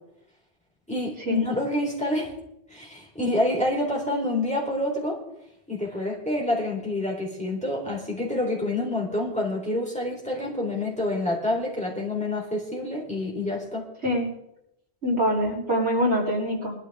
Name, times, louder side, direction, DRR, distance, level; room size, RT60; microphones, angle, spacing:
voice 1, 0.9-2.3 2.7-5.2 5.7-13.8, left 1 dB, 5° left, -2 dB, 4.0 m, -27 dB
voice 2, 14.0-14.3 15.0-16.7, equal, 80° right, -4 dB, 4.4 m, -24 dB
20.0 x 13.0 x 3.7 m, 0.80 s
omnidirectional pair, 1.1 m